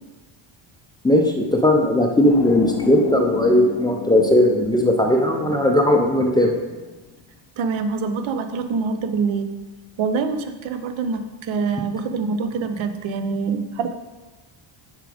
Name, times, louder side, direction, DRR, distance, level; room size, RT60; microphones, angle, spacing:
voice 1, 1.0-6.6, left 1 dB, 10° left, 0 dB, 0.4 m, -18 dB
sound 1, 2.2-7.2, left 7 dB, 80° left, 0.8 m, -32 dB
voice 2, 7.6-9.5 10.0-13.9, right 5 dB, 70° right, 9 dB, 0.7 m, -25 dB
6.5 x 5.1 x 4.9 m, 1.2 s
cardioid pair, 160°, 49 cm